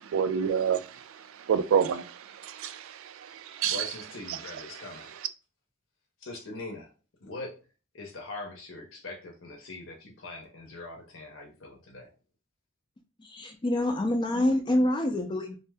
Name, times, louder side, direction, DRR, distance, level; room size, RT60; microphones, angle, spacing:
voice 1, 0.1-0.9 1.5-3.9 4.3-4.4, right 7 dB, 85° right, 0.3 m, -28 dB
voice 2, 3.6-5.1 6.2-6.9 7.2-7.6 7.9-12.1, left 2 dB, 75° left, 0.7 m, -42 dB
voice 3, 13.2-15.6, left 1 dB, 20° left, 0.3 m, -26 dB
2.6 x 2.1 x 3.4 m
head